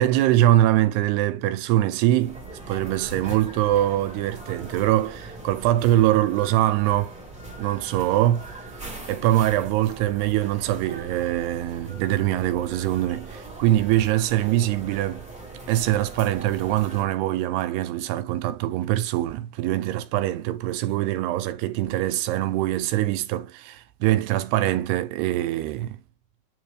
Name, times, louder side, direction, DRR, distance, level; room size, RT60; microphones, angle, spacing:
voice 1, 0.0-2.4 2.7-7.2 7.6-8.5 9.1-15.3 15.7-26.0, right 14 dB, 85° right, 2.6 m, -23 dB
sound 1, 2.2-17.0, right 2 dB, 5° right, 1.0 m, -40 dB
9.4 x 3.5 x 3.2 m
omnidirectional pair, 4.7 m